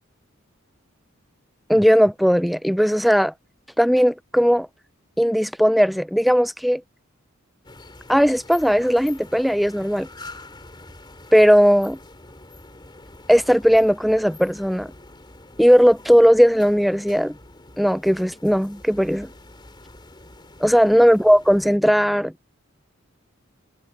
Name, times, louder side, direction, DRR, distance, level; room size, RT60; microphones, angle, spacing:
voice 1, 1.7-3.3 3.8-4.7 5.2-6.8 8.1-10.1 11.3-12.0 13.3-14.9 15.6-17.4 17.8-19.3 20.6-22.3, equal, ahead, 0.3 m, -17 dB
sound 1, 7.6-21.8, left 2 dB, 20° left, 3.2 m, -45 dB
head